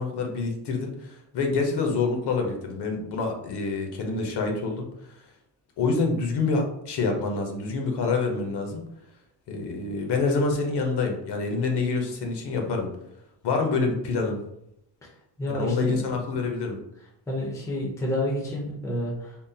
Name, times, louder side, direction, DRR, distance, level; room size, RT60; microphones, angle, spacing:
voice 1, 0.0-4.9 5.8-8.8 9.5-12.9 13.4-14.4 15.5-16.8, left 4 dB, 65° left, 3 dB, 0.7 m, -27 dB
voice 2, 15.4-16.0 17.3-19.4, left 1 dB, 10° left, -2 dB, 0.4 m, -29 dB
3.6 x 2.1 x 2.6 m, 0.78 s
wide cardioid pair, 180°, 44 cm